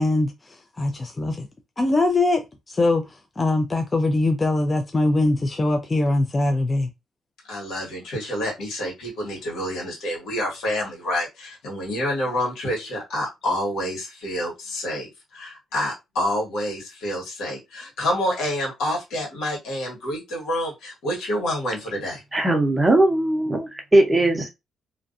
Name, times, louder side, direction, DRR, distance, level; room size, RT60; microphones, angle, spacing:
voice 1, 0.0-1.5 1.8-2.4 2.7-6.9, left 2 dB, 25° left, 0.3 m, -22 dB
voice 2, 7.5-22.2, left 1 dB, 85° left, 1.3 m, -28 dB
voice 3, 22.3-24.5, right 1 dB, 15° right, 0.7 m, -19 dB
2.5 x 2.3 x 2.4 m
cardioid pair, 90°, 0 cm